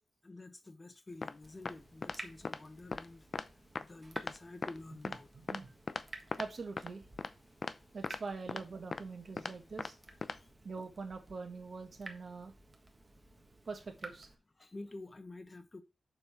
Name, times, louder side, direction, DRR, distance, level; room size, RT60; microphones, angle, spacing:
voice 1, 0.2-3.3 3.8-5.3 10.3-10.5 14.6-15.8, left 2 dB, 25° left, 1.1 m, -49 dB
sound 1, 1.2-1.3 1.7-1.8 2.0-2.2 2.4-2.6 2.9-3.1 3.3-3.4 3.8-3.9 4.2-4.4 4.6-4.8 5.0-5.2 5.5-5.6 5.9-6.0 6.3-6.5 6.8-6.9 7.2-7.3 7.6-7.7 8.0-8.2 8.5-8.6 8.9-9.0 9.4-9.5 9.8-9.9 10.2-10.4, left 4 dB, 40° left, 0.5 m, -38 dB
Water tap faucet / Drip, 1.4-14.3, right 2 dB, 20° right, 1.4 m, -54 dB
voice 2, 6.4-7.0 7.9-10.0 10.6-12.5 13.6-14.3, right 4 dB, 45° right, 1.7 m, -43 dB
7.0 x 5.4 x 5.9 m
wide cardioid pair, 155°, 0 cm